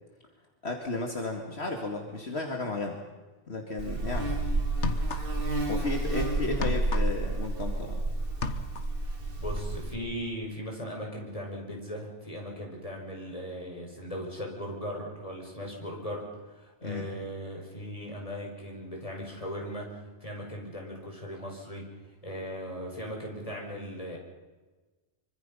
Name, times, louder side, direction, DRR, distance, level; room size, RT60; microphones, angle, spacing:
voice 1, 0.6-3.0 3.5-4.3 5.7-8.1 16.8-17.1, left 2 dB, 65° left, 2 dB, 2.4 m, -33 dB
Buzz, 3.8-9.9, right 2 dB, 50° right, 2.6 m, -30 dB
sound 1, 4.0-4.1 4.7-5.6 5.9-8.0 8.3-9.0, left 5 dB, 85° left, 1.6 m, -36 dB
voice 2, 9.1-21.9 22.2-24.2, equal, 30° left, 0 dB, 5.5 m, -38 dB
25.0 x 24.5 x 5.6 m, 1.3 s
omnidirectional pair, 1.2 m